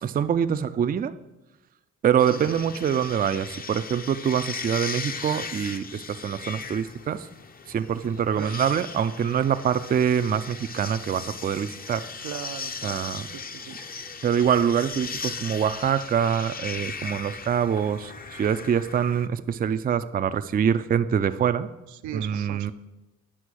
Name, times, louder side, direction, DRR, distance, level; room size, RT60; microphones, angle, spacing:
voice 1, 0.0-1.1 2.0-7.3 7.7-12.1 12.8-13.3 14.2-21.7 22.1-22.7, right 8 dB, 30° right, 11 dB, 0.4 m, -25 dB
sound 1, 2.2-19.3, left 5 dB, 30° left, 0.6 m, -38 dB
voice 2, 12.2-13.0 13.5-13.8 21.9-22.7, right 10 dB, 75° right, 10 dB, 0.6 m, -38 dB
9.9 x 5.8 x 6.2 m, 1.0 s
cardioid pair, 90°, 30 cm